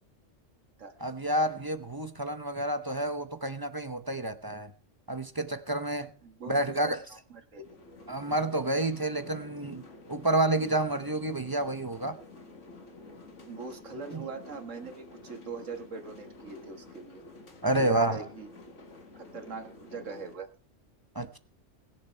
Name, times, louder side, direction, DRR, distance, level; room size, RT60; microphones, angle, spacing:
voice 1, 1.0-4.7 5.1-6.1 6.5-7.0 8.1-9.8 10.1-12.2 14.1-14.2 17.6-18.3 21.1-21.4, right 1 dB, 20° right, 0.7 m, -29 dB
voice 2, 6.2-6.9 7.3-7.7 9.4-9.5 13.5-17.2 17.6-18.5 19.2-20.5, right 4 dB, 80° right, 1.9 m, -41 dB
sound 1, 7.6-20.3, left 3 dB, 75° left, 2.0 m, -50 dB
20.0 x 7.3 x 4.5 m
omnidirectional pair, 1.3 m